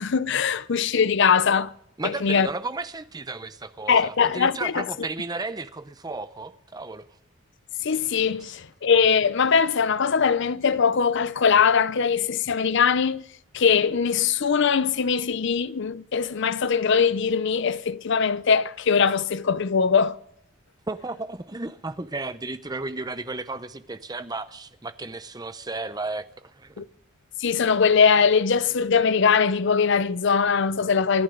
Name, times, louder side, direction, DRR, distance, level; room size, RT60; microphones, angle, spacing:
voice 1, 0.0-1.7 2.0-2.5 3.9-4.8 7.8-13.2 13.5-20.2 26.8-26.9 27.4-31.2, left 6 dB, 60° left, 0.6 m, -21 dB
voice 2, 2.0-7.1 20.9-26.8, right 3 dB, 20° right, 0.7 m, -34 dB
26.5 x 11.0 x 3.8 m
head